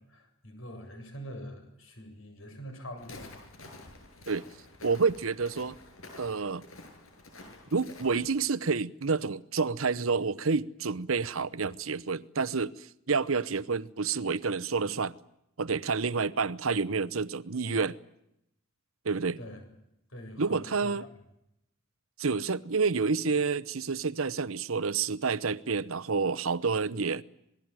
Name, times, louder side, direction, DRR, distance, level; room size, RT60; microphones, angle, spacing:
voice 1, 0.1-3.5 19.4-19.6 20.1-20.9, equal, 75° left, 7.9 m, -44 dB
Walk footsteps, 3.0-8.3, left 2 dB, 90° left, 7.9 m, -49 dB
voice 2, 4.8-5.8 6.2-6.6 7.7-15.1 15.6-18.0 19.0-19.4 20.4-21.1 22.2-27.2, right 4 dB, 85° right, 0.9 m, -29 dB
27.0 x 20.5 x 9.2 m
head